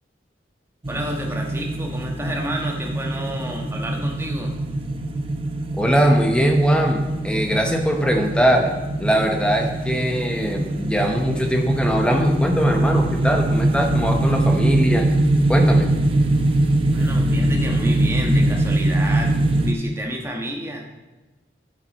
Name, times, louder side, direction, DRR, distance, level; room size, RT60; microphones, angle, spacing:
sound 1, 0.8-19.7, right 1 dB, 30° right, 0.7 m, -22 dB
voice 1, 0.9-4.6 16.9-20.8, right 1 dB, 15° right, 0 dB, 1.3 m, -30 dB
voice 2, 5.8-8.7 9.0-15.1 15.5-15.9, equal, 5° left, 3 dB, 0.9 m, -20 dB
9.5 x 7.6 x 4.2 m, 1.2 s
head